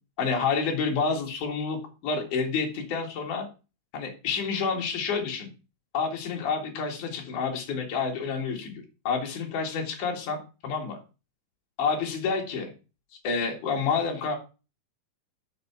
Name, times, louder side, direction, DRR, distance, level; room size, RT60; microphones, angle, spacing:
voice 1, 0.2-3.5 3.9-5.5 5.9-10.4 10.6-11.0 11.8-12.7 13.2-14.4, left 5 dB, 65° left, 1 dB, 3.4 m, -29 dB
6.7 x 5.7 x 6.9 m, 0.31 s
omnidirectional pair, 4.0 m